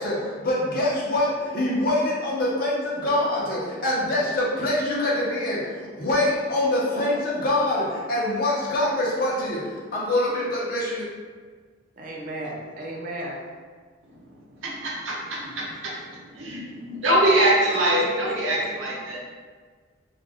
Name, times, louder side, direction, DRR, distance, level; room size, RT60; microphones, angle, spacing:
voice 1, 0.0-11.1, left 1 dB, 50° left, -5 dB, 0.6 m, -25 dB
voice 2, 12.0-13.4 18.3-18.7, right 1 dB, 40° right, -2 dB, 0.4 m, -35 dB
voice 3, 14.6-19.2, right 1 dB, 75° right, -4 dB, 0.7 m, -24 dB
2.4 x 2.1 x 3.3 m, 1.5 s
head